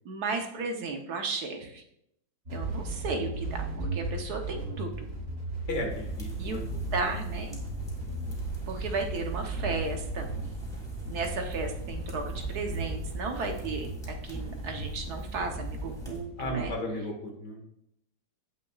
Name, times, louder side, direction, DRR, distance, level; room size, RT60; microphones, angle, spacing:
voice 1, 0.0-1.8 2.5-5.1 6.4-6.6 6.9-7.6 8.7-10.3 11.1-16.7, right 4 dB, 65° right, 4 dB, 1.4 m, -34 dB
sound 1, 2.5-16.7, right 2 dB, 45° right, 2.5 m, -37 dB
voice 2, 5.7-6.6 16.4-17.6, left 1 dB, 70° left, 2 dB, 2.2 m, -34 dB
sound 2, 5.9-16.2, equal, ahead, 2.8 m, -40 dB
16.5 x 5.6 x 2.4 m, 0.76 s
omnidirectional pair, 1.9 m